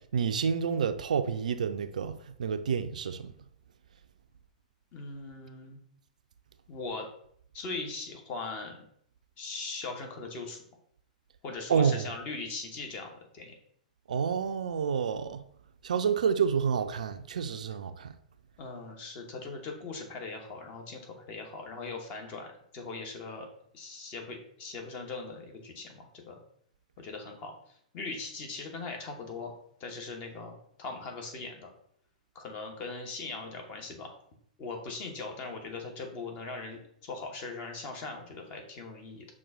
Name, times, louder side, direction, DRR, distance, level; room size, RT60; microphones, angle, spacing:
voice 1, 0.1-3.3 11.7-12.1 14.1-15.4 15.8-18.1, right 6 dB, 65° right, 0.3 m, -29 dB
voice 2, 4.9-5.8 6.7-7.1 7.5-8.8 9.4-10.6 11.4-13.5 18.6-23.5 23.7-26.4 27.0-27.5 27.9-29.5 29.8-31.7 32.3-34.2 34.6-39.3, left 3 dB, 35° left, 1.0 m, -40 dB
5.9 x 2.4 x 3.5 m
figure-of-eight pair, 105°, 4 cm